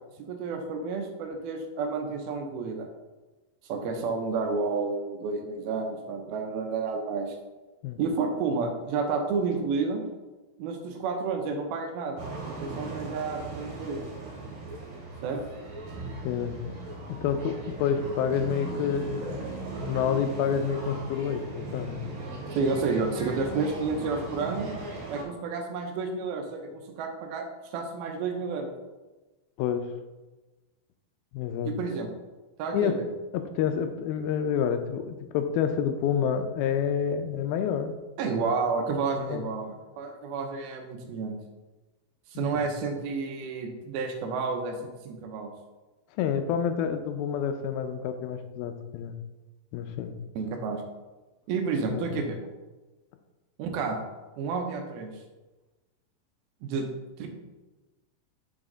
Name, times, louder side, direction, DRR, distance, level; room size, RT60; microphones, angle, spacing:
voice 1, 0.2-2.9 3.7-7.4 8.0-10.0 10.6-14.1 15.2-15.4 22.5-24.7 25.1-27.4 27.7-28.7 31.6-32.1 32.6-33.1 38.2-41.3 42.3-45.5 50.4-50.8 51.5-52.4 53.6-54.1 54.4-55.1 56.6-56.9 57.2-57.3, right 4 dB, 85° right, 4 dB, 2.7 m, -30 dB
sound 1, 12.2-25.2, right 2 dB, 70° right, 3.3 m, -38 dB
voice 2, 16.2-16.8 17.1-22.0 29.6-29.9 31.3-31.7 32.7-33.0 33.3-37.9 39.2-39.5 42.4-42.7 46.2-49.2 49.7-50.1 51.9-52.2, left 8 dB, 85° left, 8 dB, 2.4 m, -28 dB
6.3 x 6.1 x 3.9 m, 1.1 s
omnidirectional pair, 4.3 m